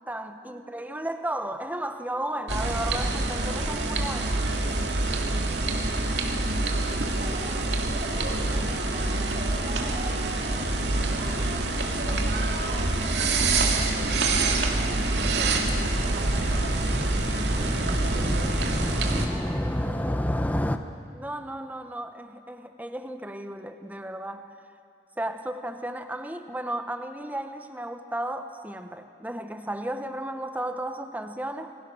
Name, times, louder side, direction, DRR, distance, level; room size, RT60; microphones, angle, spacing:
voice 1, 0.1-4.4 17.5-17.7 21.1-24.5 25.2-31.7, right 1 dB, 10° right, 7 dB, 1.1 m, -34 dB
sound 1, 2.5-19.3, right 2 dB, 75° right, 2.3 m, -26 dB
voice 2, 6.8-11.6 12.0-16.8 17.5-20.5, right 1 dB, 50° right, -6 dB, 5.0 m, -41 dB
Motorcycle, 13.2-20.8, equal, 10° left, 0.8 m, -31 dB
28.0 x 21.5 x 6.3 m, 2.4 s
head